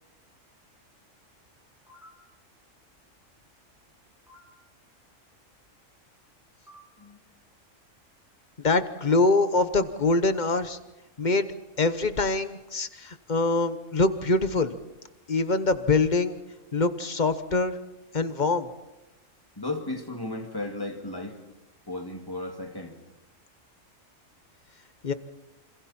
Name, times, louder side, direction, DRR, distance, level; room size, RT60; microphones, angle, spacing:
sound 1, 1.9-2.1 4.3-4.4 6.7-6.8 9.1-9.6, left 1 dB, ahead, 7.2 m, -51 dB
voice 1, 8.6-10.8 11.2-11.5 11.8-14.7 15.3-16.3 16.7-17.8 18.1-18.7 25.0-25.1, left 3 dB, 40° left, 11 dB, 1.1 m, -24 dB
voice 2, 19.6-21.4 21.9-23.0, left 2 dB, 15° left, 3 dB, 2.3 m, -34 dB
27.5 x 26.5 x 4.3 m, 1.0 s
omnidirectional pair, 1.3 m